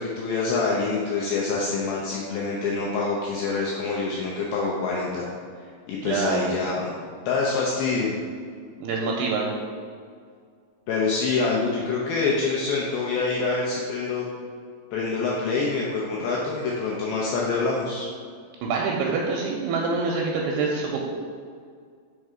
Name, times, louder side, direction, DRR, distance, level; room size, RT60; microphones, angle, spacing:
voice 1, 0.0-5.3 5.6-6.9 7.3-8.1 10.9-14.3 14.9-18.1, left 4 dB, 80° left, -3 dB, 2.2 m, -26 dB
voice 2, 6.0-6.5 8.8-9.5 18.6-21.0, right 4 dB, 80° right, -1 dB, 2.5 m, -26 dB
5.4 x 4.6 x 4.9 m, 2.1 s
omnidirectional pair, 5.0 m